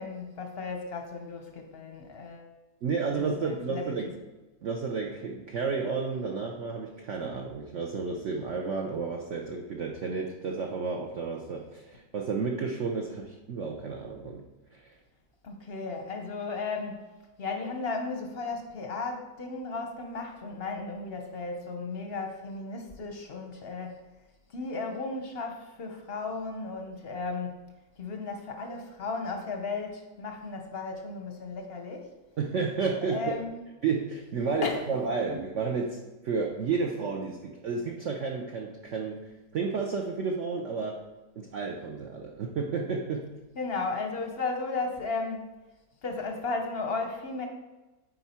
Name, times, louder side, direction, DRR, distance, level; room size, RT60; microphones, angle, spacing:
voice 1, 0.0-2.5 3.1-3.9 15.4-17.1 17.4-24.0 24.5-27.7 28.0-32.1 33.1-33.6 34.6-35.0 35.3-35.4 43.6-45.5 46.0-47.5, left 3 dB, 50° left, 4 dB, 0.7 m, -35 dB
voice 2, 2.8-4.1 4.6-14.4 14.7-14.9 32.4-33.2 33.8-41.0 41.4-43.3, right 4 dB, 60° right, 1 dB, 0.8 m, -32 dB
8.1 x 4.6 x 4.3 m, 1.1 s
omnidirectional pair, 1.9 m